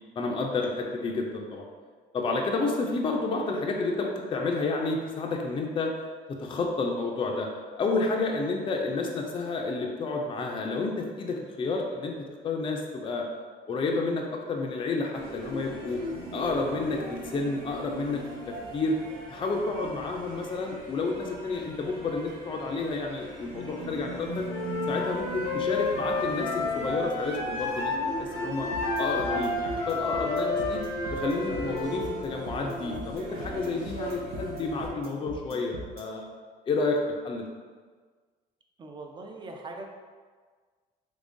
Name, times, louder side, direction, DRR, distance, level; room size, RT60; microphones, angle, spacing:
voice 1, 0.2-1.6 2.1-5.9 6.4-7.5 7.8-12.1 12.4-13.2 13.7-16.0 16.3-18.2 18.5-19.0 19.3-24.4 24.9-28.7 29.0-30.8 31.1-36.2 36.7-37.0 37.2-37.5, left 3 dB, 30° left, 1 dB, 0.4 m, -30 dB
sound 1, 15.1-34.9, right 1 dB, 90° right, 0.9 m, -39 dB
Wind instrument woodwind instrument, 24.5-28.0 28.3-32.1, left 3 dB, 90° left, 0.7 m, -31 dB
sound 2, 28.7-36.0, equal, 65° right, 0.7 m, -41 dB
voice 2, 38.8-39.9, right 2 dB, 30° right, 2 dB, 0.5 m, -41 dB
3.6 x 3.1 x 2.6 m, 1.5 s
cardioid pair, 110°, 17 cm